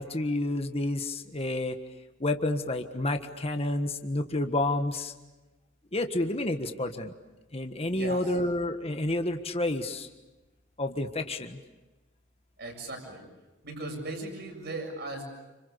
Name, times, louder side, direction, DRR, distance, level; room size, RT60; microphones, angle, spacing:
voice 1, 0.0-1.8 2.2-5.1 5.9-7.1 7.5-10.1 10.8-11.6, left 1 dB, 30° left, 6 dB, 1.5 m, -29 dB
voice 2, 7.9-8.4 12.6-13.2 13.6-15.2, right 2 dB, 60° right, 3 dB, 7.3 m, -38 dB
29.5 x 27.0 x 6.9 m, 1.1 s
head